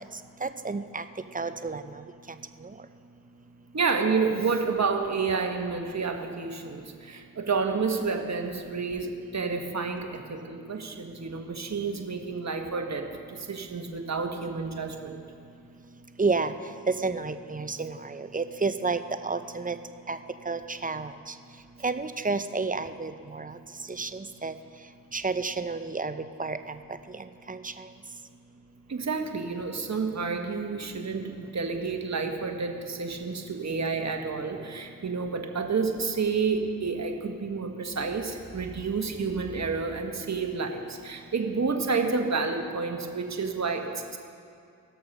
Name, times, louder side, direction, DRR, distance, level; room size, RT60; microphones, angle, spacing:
voice 1, 0.4-1.0 1.3-1.8 16.2-16.5 16.9-19.8 20.1-20.2 20.5-21.1 21.8-23.5 23.9-24.5 25.1-26.1 26.4-26.6 27.5-27.7, right 4 dB, 20° right, 10 dB, 0.7 m, -30 dB
voice 2, 3.7-15.2 28.9-44.2, right 4 dB, 45° right, 4 dB, 1.4 m, -30 dB
18.0 x 6.7 x 5.4 m, 2.3 s
supercardioid pair, 40°, 36 cm